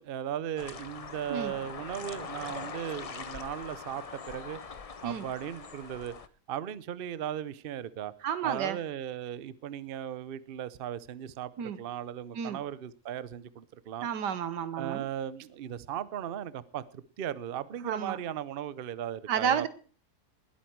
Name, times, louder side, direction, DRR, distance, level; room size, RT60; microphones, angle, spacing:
voice 1, 0.0-4.6 5.0-6.1 6.5-8.1 8.4-14.1 14.8-19.7, right 10 dB, 55° right, 0.6 m, -37 dB
sound 1, 0.6-6.3, left 5 dB, 60° left, 0.3 m, -42 dB
voice 2, 8.2-8.8 11.6-11.8 12.4-12.6 14.0-15.1 17.8-18.2 19.3-19.7, right 8 dB, 90° right, 1.7 m, -31 dB
20.0 x 8.6 x 4.6 m
omnidirectional pair, 1.8 m